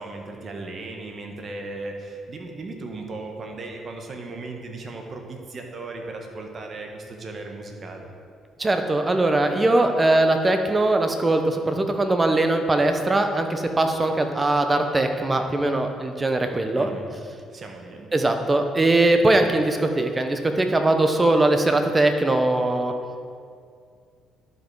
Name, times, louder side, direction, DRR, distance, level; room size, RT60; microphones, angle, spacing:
voice 1, 0.0-8.1 16.8-17.1 17.5-18.1, right 2 dB, 45° right, 3 dB, 1.3 m, -36 dB
voice 2, 8.6-16.9 18.1-22.9, right 2 dB, 20° right, 6 dB, 0.9 m, -21 dB
11.0 x 5.3 x 4.7 m, 2.2 s
cardioid pair, 85°, 0 cm